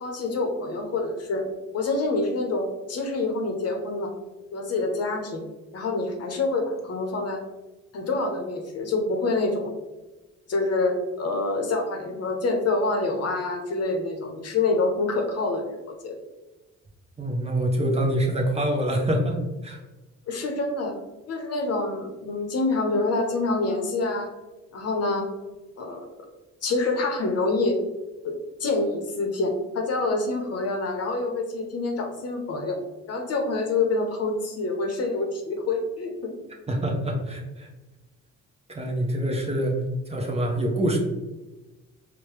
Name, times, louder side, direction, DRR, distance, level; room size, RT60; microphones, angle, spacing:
voice 1, 0.0-1.4 1.7-4.1 4.5-5.4 5.7-7.4 7.9-9.7 10.5-16.2 20.3-21.0 21.3-24.3 24.7-25.3 25.8-26.1 26.6-27.8 28.2-28.3 28.6-32.8 33.1-36.3, left 3 dB, 55° left, 2 dB, 0.8 m, -26 dB
voice 2, 17.2-19.8 36.7-37.7 38.7-41.0, right 1 dB, 20° right, 1 dB, 0.7 m, -25 dB
4.6 x 2.2 x 3.1 m, 1.1 s
cardioid pair, 90°, 30 cm